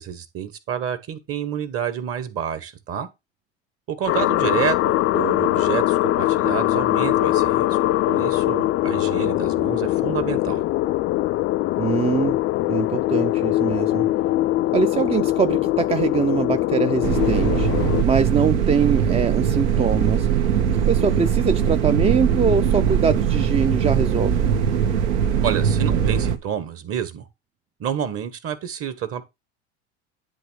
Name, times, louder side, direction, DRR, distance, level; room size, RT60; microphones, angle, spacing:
voice 1, 0.0-3.1 3.9-7.8 8.1-10.6 25.4-27.3 27.8-29.2, right 9 dB, 40° right, 1.9 m, -29 dB
sound 1, 4.1-18.0, left 16 dB, 40° left, 0.4 m, -22 dB
voice 2, 11.8-12.4 12.7-14.1 14.7-17.7 18.0-20.3 20.9-24.5, right 6 dB, 20° right, 0.6 m, -23 dB
sound 2, 17.0-26.4, right 8 dB, 75° right, 1.4 m, -21 dB
10.0 x 3.4 x 6.5 m
hypercardioid pair, 100°, 34 cm